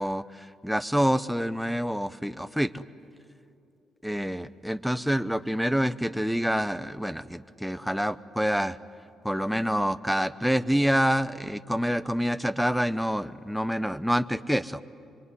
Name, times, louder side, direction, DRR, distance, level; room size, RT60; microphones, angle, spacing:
voice 1, 0.0-2.9 4.0-8.8 9.2-14.8, equal, ahead, 13 dB, 0.8 m, -27 dB
24.5 x 23.5 x 9.8 m, 2.7 s
cardioid pair, 90°, 0 cm